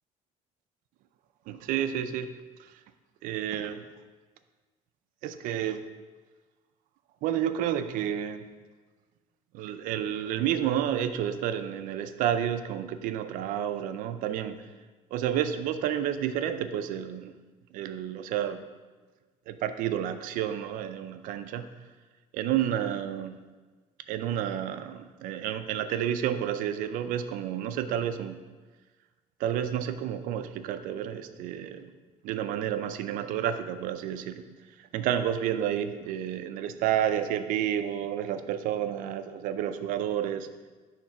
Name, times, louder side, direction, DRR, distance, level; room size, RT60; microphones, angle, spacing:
voice 1, 1.5-2.3 2.6-2.7 3.2-3.8 5.2-5.8 7.2-8.5 9.5-14.7 15.1-17.4 17.7-18.6 19.5-21.6 22.3-23.4 24.1-28.4 29.4-31.9 32.2-34.4 34.8-40.7, right 10 dB, 70° right, 10 dB, 0.4 m, -30 dB
7.0 x 3.3 x 5.9 m, 1.3 s
cardioid pair, 160°, 14 cm